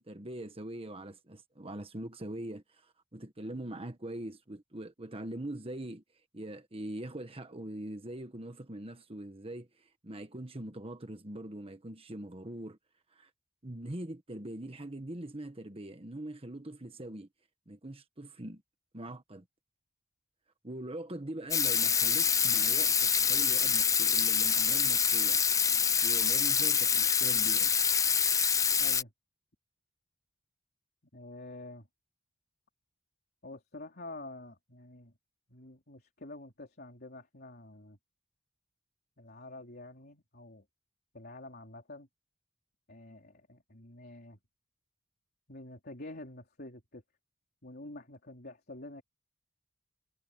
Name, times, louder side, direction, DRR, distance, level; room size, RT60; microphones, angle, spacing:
voice 1, 0.0-6.0 6.3-12.8 13.1-13.3 13.6-17.3 17.7-18.6 18.9-19.4 20.6-25.4 26.0-27.7, right 1 dB, 30° right, 1.4 m, -42 dB
Water tap faucet / Sink (filling or washing), 21.5-29.0, left 7 dB, 15° left, 0.4 m, -26 dB
voice 2, 28.8-29.1 31.1-31.9 33.4-35.1 35.5-38.0 39.2-40.7 41.1-42.1 42.9-44.4 45.5-47.0 47.6-49.0, left 2 dB, 50° left, 3.7 m, -47 dB
head